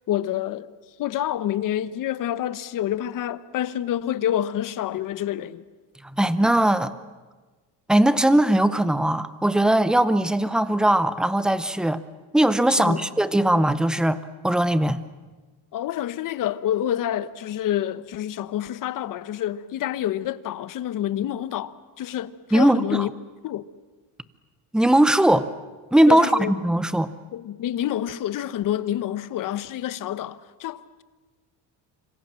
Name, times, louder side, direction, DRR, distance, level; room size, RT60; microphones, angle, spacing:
voice 1, 0.1-0.7 1.0-5.6 12.7-13.1 15.7-23.1 23.4-23.7 26.1-26.5 27.3-31.0, left 11 dB, 50° left, 1.0 m, -28 dB
voice 2, 6.2-6.9 7.9-12.0 12.3-15.0 22.5-23.1 24.7-25.5 25.9-27.1, right 1 dB, ahead, 0.7 m, -19 dB
27.0 x 25.0 x 7.6 m
cardioid pair, 155°, 41 cm